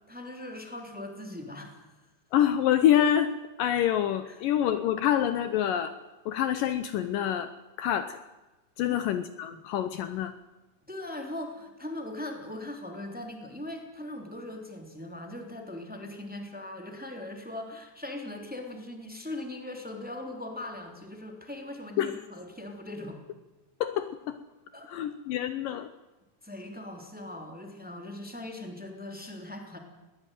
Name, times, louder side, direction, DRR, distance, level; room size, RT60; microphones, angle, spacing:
voice 1, 0.1-1.9 4.2-4.4 8.8-9.0 10.9-23.2 24.7-25.1 26.4-29.8, left 1 dB, 5° right, 3 dB, 2.8 m, -40 dB
voice 2, 2.3-3.3 3.6-5.9 6.3-7.5 7.8-8.2 8.8-10.3 22.0-22.2 23.8-24.4 24.9-25.9, left 10 dB, 75° left, 11 dB, 2.3 m, -26 dB
21.5 x 18.5 x 9.2 m, 1.1 s
omnidirectional pair, 4.3 m